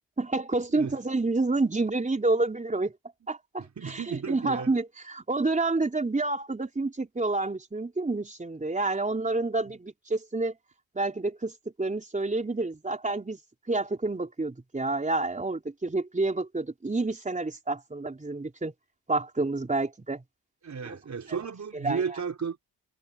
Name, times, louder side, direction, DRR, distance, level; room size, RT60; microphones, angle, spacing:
voice 1, 0.2-2.9 3.3-10.5 10.9-11.5 11.8-13.4 13.7-18.7 19.1-20.2 20.8-21.0 21.7-22.2, right 3 dB, 20° right, 4.1 m, -29 dB
voice 2, 3.8-4.7 9.3-9.4 20.6-22.6, right 6 dB, 45° right, 4.1 m, -33 dB
cardioid pair, 90°, 38 cm